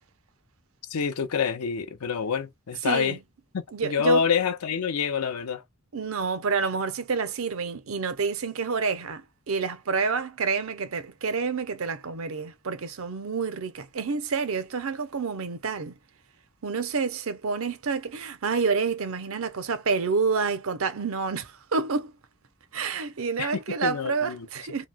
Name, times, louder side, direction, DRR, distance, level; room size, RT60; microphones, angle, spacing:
voice 1, 0.9-3.2 3.5-5.6 23.4-23.5 23.8-24.5, left 6 dB, 90° left, 0.6 m, -27 dB
voice 2, 2.8-3.2 3.7-4.3 5.9-16.0 16.6-22.1 22.7-24.9, right 5 dB, 70° right, 0.6 m, -28 dB
3.0 x 2.7 x 2.2 m
head